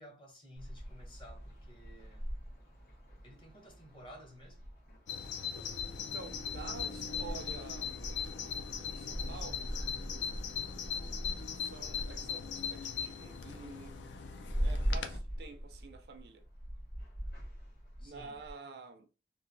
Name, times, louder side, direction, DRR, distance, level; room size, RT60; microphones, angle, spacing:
voice 1, 0.0-2.3 3.2-4.7 18.0-18.4, equal, 25° left, 0.8 m, -54 dB
sound 1, 0.6-18.5, equal, 50° left, 1.2 m, -42 dB
Bird vocalization bird call bird song, 5.1-15.2, left 7 dB, 80° left, 0.4 m, -39 dB
voice 2, 6.0-8.0 8.8-9.7 11.6-14.0 14.6-16.5 18.0-19.1, right 4 dB, 60° right, 0.4 m, -49 dB
3.0 x 2.4 x 2.6 m
head